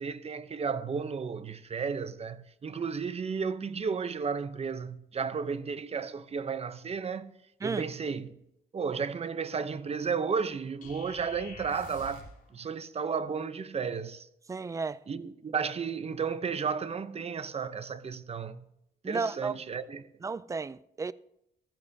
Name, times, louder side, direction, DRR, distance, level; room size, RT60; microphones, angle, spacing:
voice 1, 0.0-7.3 7.6-8.3 8.7-12.3 12.5-14.3 15.1-18.6 19.1-20.1, right 5 dB, 35° right, 0.7 m, -33 dB
sound 1, 10.8-12.4, left 2 dB, 50° left, 4.0 m, -47 dB
voice 2, 14.5-15.0 19.0-19.5 20.2-21.1, right 4 dB, 20° right, 0.4 m, -33 dB
14.5 x 13.5 x 2.8 m
cardioid pair, 110°, 18 cm